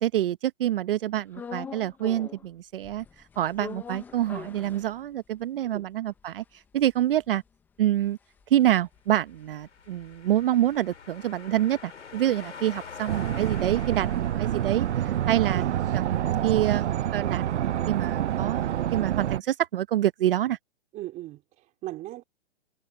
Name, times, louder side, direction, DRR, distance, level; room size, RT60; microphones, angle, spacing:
voice 1, 0.0-3.0 3.4-7.4 7.8-8.2 8.5-15.6 15.9-16.8 17.1-20.6, right 12 dB, 50° right, 1.0 m, -27 dB
sound 1, 1.3-2.5 2.8-5.4 5.8-5.9 6.1-10.6 10.9-15.0, left 6 dB, 5° left, 0.6 m, -45 dB
sound 2, 9.3-16.1, left 6 dB, 85° left, 4.8 m, -45 dB
sound 3, 13.1-19.4, right 11 dB, 75° right, 0.6 m, -27 dB
voice 2, 20.9-22.2, right 16 dB, 20° right, 3.1 m, -38 dB
hypercardioid pair, 150°, 35 cm